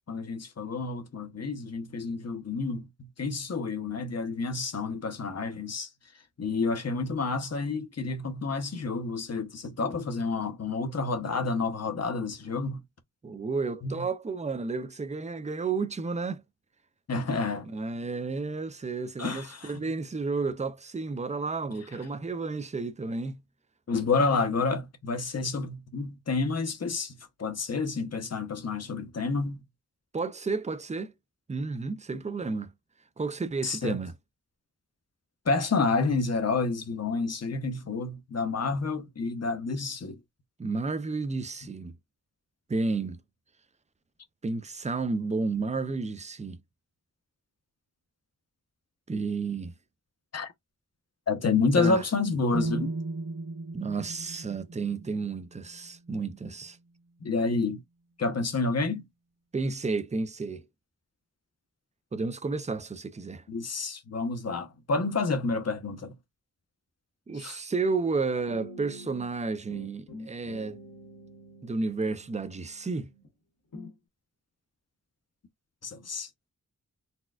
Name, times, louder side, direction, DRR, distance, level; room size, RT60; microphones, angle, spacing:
voice 1, 0.1-2.9 3.2-5.9 6.4-12.8 13.8-14.0 17.1-17.7 19.2-19.7 23.9-27.1 27.4-29.6 33.6-34.0 35.5-40.2 50.3-50.5 51.3-52.9 57.2-57.8 58.2-59.0 63.5-66.1 67.3-67.6 75.8-76.3, left 4 dB, 50° left, 0.8 m, -29 dB
voice 2, 13.2-16.4 17.6-23.4 30.1-31.1 31.5-32.7 33.2-34.1 40.6-41.9 42.7-43.2 44.4-46.6 49.1-49.7 51.8-52.0 53.7-56.8 59.5-60.6 62.1-63.4 67.3-70.8 71.6-73.1, right 4 dB, 20° right, 0.4 m, -31 dB
sound 1, 52.5-56.5, right 3 dB, 75° right, 1.0 m, -36 dB
sound 2, 68.5-69.4 69.7-73.3 73.7-74.0, left 1 dB, 85° left, 1.3 m, -47 dB
4.2 x 2.2 x 2.3 m
wide cardioid pair, 85°, 33 cm